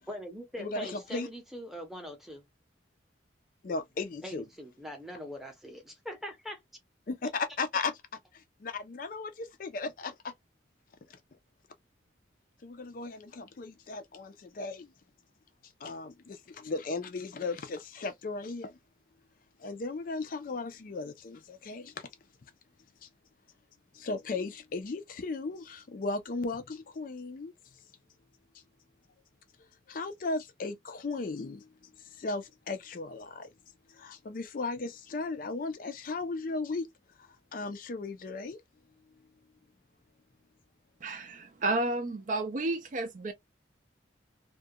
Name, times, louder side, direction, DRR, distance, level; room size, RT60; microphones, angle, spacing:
voice 1, 0.1-2.4 4.2-6.6, equal, ahead, 0.7 m, -42 dB
voice 2, 0.6-1.3 3.6-4.5 7.1-8.0 8.3-10.3 11.1-11.2 12.6-14.9 15.6-18.8 19.6-22.1 23.0-23.1 23.9-27.5 28.5-28.6 29.6-33.5 33.9-36.9 37.2-38.6, left 3 dB, 45° left, 0.4 m, -36 dB
voice 3, 41.0-43.3, right 2 dB, 40° right, 0.4 m, -31 dB
2.3 x 2.2 x 2.6 m
head